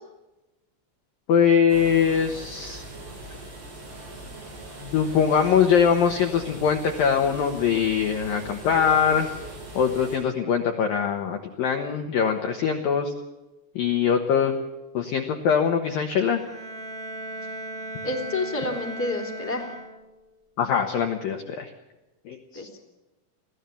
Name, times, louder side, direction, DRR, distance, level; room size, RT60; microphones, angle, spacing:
voice 1, 1.3-2.8 4.8-9.3 9.8-13.1 13.8-14.6 14.9-16.4 20.6-21.7 22.3-22.7, left 7 dB, 70° left, 5 dB, 2.1 m, -22 dB
sound 1, 1.7-10.2, right 2 dB, 85° right, 10.0 m, -41 dB
Bowed string instrument, 16.1-20.3, right 1 dB, 45° right, 1.2 m, -37 dB
voice 2, 18.0-19.7 22.5-22.8, left 2 dB, 5° left, 3 dB, 1.5 m, -29 dB
23.0 x 16.0 x 7.0 m, 1.1 s
omnidirectional pair, 5.9 m